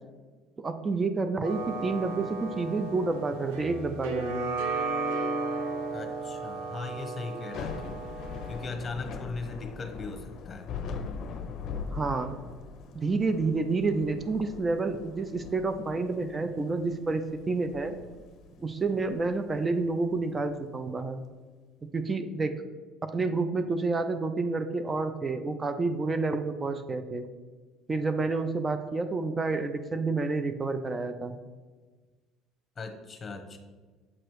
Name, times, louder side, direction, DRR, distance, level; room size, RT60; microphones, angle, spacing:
voice 1, 0.6-4.5 11.9-12.4 12.9-17.9 18.6-21.2 21.9-22.5 23.0-27.3 27.9-31.4, right 3 dB, 30° right, 8 dB, 0.5 m, -29 dB
sound 1, 1.4-8.7, right 3 dB, 80° right, 0.6 m, -34 dB
voice 2, 5.9-8.0 8.5-10.7 32.8-33.6, left 3 dB, 30° left, 5 dB, 1.1 m, -38 dB
Thunder / Rain, 7.3-20.5, left 5 dB, 60° left, 0.5 m, -41 dB
7.4 x 3.0 x 4.6 m, 1.4 s
hypercardioid pair, 75°, 0 cm